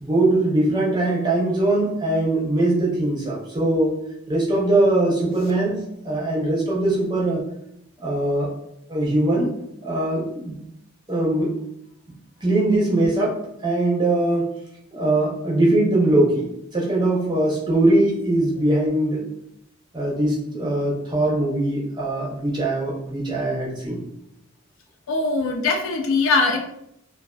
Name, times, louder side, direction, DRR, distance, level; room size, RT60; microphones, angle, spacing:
voice 1, 0.0-3.9 4.3-7.4 8.0-8.5 8.9-9.5 9.8-10.6 11.1-11.5 12.4-13.4 13.6-14.5 14.9-19.2 19.9-24.0, right 1 dB, 20° right, -4 dB, 0.5 m, -21 dB
voice 2, 25.1-26.6, left 3 dB, 70° left, 2 dB, 0.4 m, -21 dB
2.3 x 2.3 x 2.3 m, 0.76 s
head